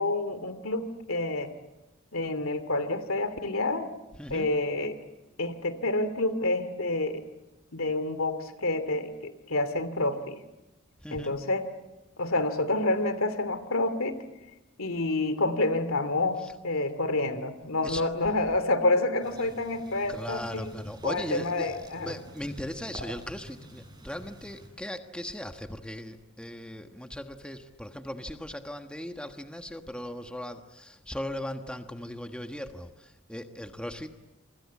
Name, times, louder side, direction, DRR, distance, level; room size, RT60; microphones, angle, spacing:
voice 1, 0.0-1.5 2.1-3.9 4.3-5.0 5.4-7.2 7.7-10.4 11.1-11.7 12.2-14.2 14.8-20.7 21.0-22.1, left 2 dB, 80° left, 11 dB, 2.6 m, -28 dB
voice 2, 4.2-4.5 11.0-11.3 17.8-18.0 20.1-34.1, left 1 dB, 5° left, 6 dB, 1.3 m, -38 dB
sound 1, 19.2-24.7, right 1 dB, 20° right, 7.5 m, -47 dB
28.5 x 24.5 x 8.5 m, 1.0 s
head